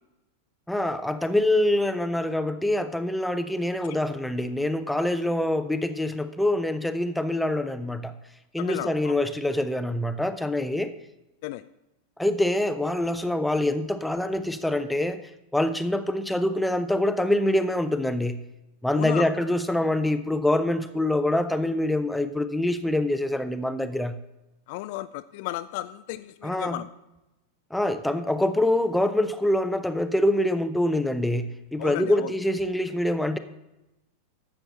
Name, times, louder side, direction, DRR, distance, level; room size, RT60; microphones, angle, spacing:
voice 1, 0.7-8.1 8.5-11.0 12.2-15.2 15.5-18.4 18.8-24.2 26.4-26.8 27.7-33.4, left 1 dB, 5° left, 10 dB, 0.7 m, -25 dB
voice 2, 8.6-9.1 11.4-11.6 18.9-19.3 24.7-26.9 31.8-32.3, left 16 dB, 50° left, 13 dB, 0.3 m, -34 dB
12.0 x 7.9 x 4.1 m, 0.95 s
figure-of-eight pair, 90°, 0 cm